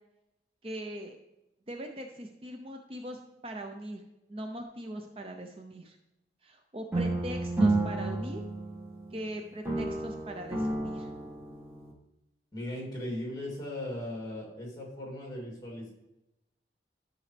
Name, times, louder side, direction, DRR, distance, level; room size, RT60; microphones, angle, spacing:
voice 1, 0.6-1.2 1.7-4.0 4.3-6.0 6.4-8.4 9.1-11.1, right 1 dB, 30° right, 4 dB, 0.6 m, -40 dB
sound 1, 6.9-9.3 9.6-11.9, right 2 dB, 15° right, 1.5 m, -31 dB
voice 2, 12.5-15.9, left 1 dB, 25° left, -3 dB, 2.8 m, -38 dB
12.5 x 6.2 x 3.3 m, 0.92 s
head